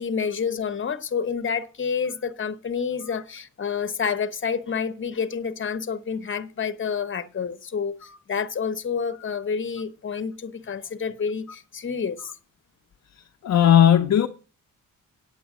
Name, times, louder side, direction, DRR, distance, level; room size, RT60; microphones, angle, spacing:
voice 1, 0.0-12.3, left 6 dB, 35° left, 1.0 m, -29 dB
voice 2, 13.4-14.3, left 9 dB, 55° left, 0.7 m, -16 dB
9.0 x 8.5 x 6.1 m
wide cardioid pair, 135°, 33 cm